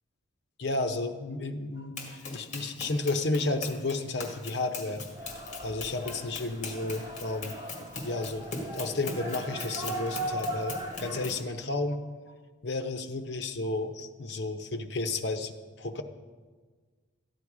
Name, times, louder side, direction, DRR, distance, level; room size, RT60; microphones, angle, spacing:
voice 1, 0.6-5.0 5.6-7.7 8.0-8.4 8.7-12.3 12.6-15.5 15.8-16.0, left 2 dB, 55° left, 6 dB, 0.8 m, -32 dB
Run, 2.0-11.5, left 3 dB, 35° left, 1.7 m, -41 dB
sound 1, 5.1-11.2, right 1 dB, 20° right, 1.9 m, -38 dB
13.5 x 9.7 x 4.9 m, 1.4 s
head